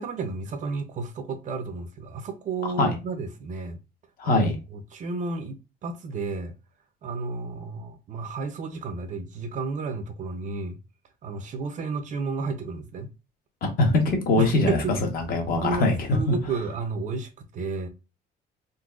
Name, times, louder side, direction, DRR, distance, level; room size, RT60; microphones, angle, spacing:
voice 1, 0.0-3.8 4.2-6.5 7.0-10.8 11.2-13.1 14.4-14.9 15.5-17.9, right 4 dB, 45° right, 0.6 m, -32 dB
voice 2, 4.2-4.6 13.6-14.8 15.1-16.2, left 2 dB, 60° left, 1.1 m, -22 dB
3.9 x 2.1 x 2.4 m
cardioid pair, 110°, 17 cm